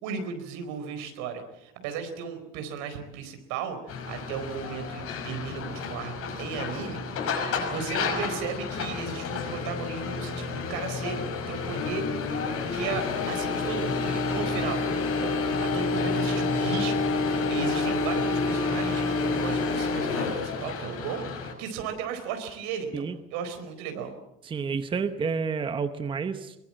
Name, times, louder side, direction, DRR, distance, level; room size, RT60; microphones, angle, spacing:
voice 1, 0.0-11.2 11.5-12.1 12.7-14.9 15.2-15.3 15.6-24.1, right 6 dB, 80° right, 7 dB, 4.4 m, -35 dB
sound 1, 3.9-21.5, left 4 dB, 50° left, 6.1 m, -29 dB
voice 2, 24.4-26.5, right 5 dB, 15° right, 9 dB, 0.9 m, -29 dB
22.5 x 21.5 x 7.6 m, 0.87 s
cardioid pair, 170°, 29 cm